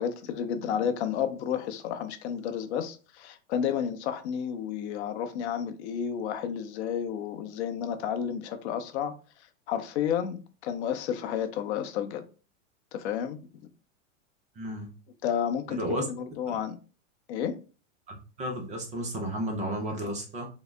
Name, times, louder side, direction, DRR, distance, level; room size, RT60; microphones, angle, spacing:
voice 1, 0.0-9.1 9.7-12.2 12.9-13.4 15.2-16.8 17.3-17.6, left 8 dB, 60° left, 0.6 m, -31 dB
voice 2, 14.6-14.9 15.7-16.1 16.5-16.6 18.1-20.5, right 1 dB, 20° right, 0.5 m, -33 dB
3.6 x 2.0 x 3.2 m
hypercardioid pair, 130°, 39 cm